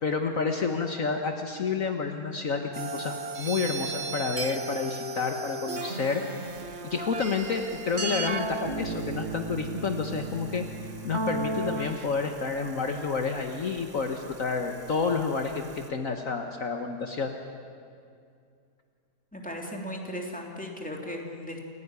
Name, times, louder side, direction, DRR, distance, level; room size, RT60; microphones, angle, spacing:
voice 1, 0.0-6.2 6.8-10.6 11.0-17.3, left 5 dB, 55° left, 5 dB, 1.7 m, -30 dB
sound 1, 2.7-12.1, right 3 dB, 45° right, 1.5 m, -34 dB
sound 2, 6.4-15.9, right 2 dB, 25° right, 1.6 m, -50 dB
voice 2, 19.3-21.6, equal, 5° left, 0 dB, 3.1 m, -37 dB
29.0 x 17.0 x 9.6 m, 2.4 s
omnidirectional pair, 1.7 m